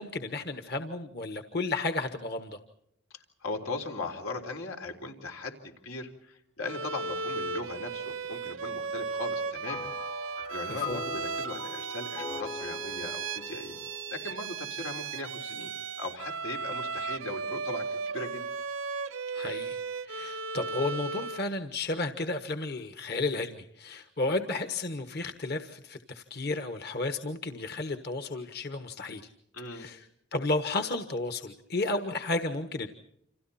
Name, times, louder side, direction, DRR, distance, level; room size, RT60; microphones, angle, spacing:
voice 1, 0.0-2.6 10.9-11.0 19.3-19.8 20.0-29.3 29.7-30.1 30.3-32.9, left 2 dB, 50° left, 8 dB, 1.4 m, -33 dB
voice 2, 3.4-9.9 10.5-13.8 14.1-15.7 16.0-18.4 29.5-29.9, left 2 dB, 90° left, 4 dB, 4.0 m, -38 dB
Bowed string instrument, 6.6-21.5, right 4 dB, 75° right, 0.8 m, -36 dB
sound 1, 9.7-15.2, left 5 dB, 30° left, 0.9 m, -41 dB
29.5 x 27.0 x 4.3 m, 0.75 s
head